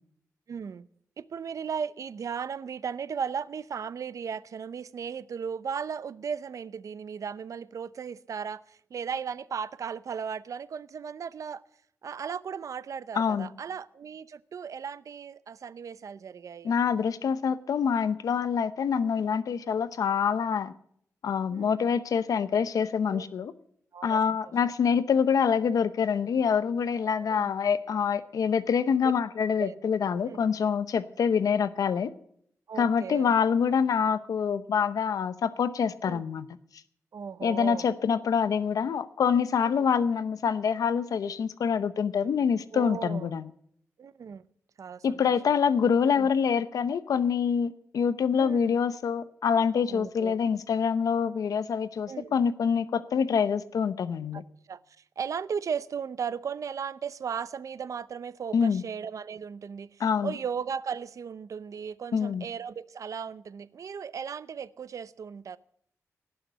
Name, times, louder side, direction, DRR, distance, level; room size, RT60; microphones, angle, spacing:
voice 1, 0.5-0.9 1.2-11.6 12.0-16.7 21.5-21.8 23.1-23.3 23.9-24.2 27.2-27.4 29.6-29.8 30.2-30.4 32.7-33.3 36.0-36.2 37.1-37.8 39.7-39.8 42.7-43.3 44.0-44.4 44.8-45.2 46.1-46.3 48.4-48.8 49.9-50.4 52.1-52.3 54.3-54.4 54.7-54.8 55.2-65.6, right 7 dB, 65° right, 0.6 m, -36 dB
voice 2, 13.1-13.5 16.6-20.7 21.2-23.5 24.0-32.1 32.8-36.5 37.4-43.5 45.0-54.4 58.5-58.8 60.0-60.4 62.1-62.4, left 6 dB, 85° left, 0.8 m, -26 dB
18.0 x 6.5 x 9.1 m
wide cardioid pair, 115°, 6 cm